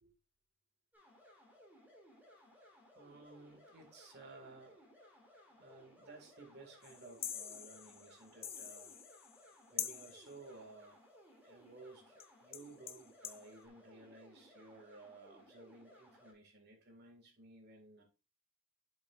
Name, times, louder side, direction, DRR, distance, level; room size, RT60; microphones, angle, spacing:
sound 1, 0.9-16.3, equal, 10° right, 2.4 m, -62 dB
voice 1, 2.9-4.8 5.5-8.9 9.7-11.0 11.4-18.0, right 3 dB, 55° right, 2.0 m, -56 dB
sound 2, 6.8-9.5 9.8-10.3 12.2-12.3 12.5-13.5, left 9 dB, 30° left, 0.6 m, -45 dB
7.6 x 7.3 x 2.5 m
head